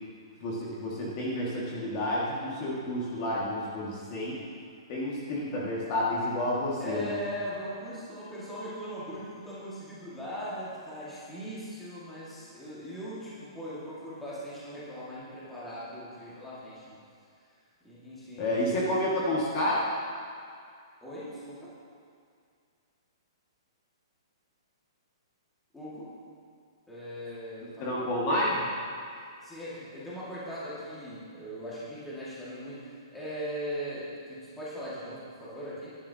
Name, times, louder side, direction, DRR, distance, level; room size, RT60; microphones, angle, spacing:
voice 1, 0.4-4.4 4.9-7.2 18.4-19.8 27.8-28.6, left 1 dB, 25° left, -6 dB, 1.8 m, -30 dB
voice 2, 6.8-17.0 17.8-18.9 21.0-21.7 25.7-26.1 26.9-28.0 29.4-35.9, equal, 5° left, -10 dB, 1.9 m, -39 dB
16.5 x 11.5 x 2.8 m, 2.3 s
hypercardioid pair, 180°, 3 cm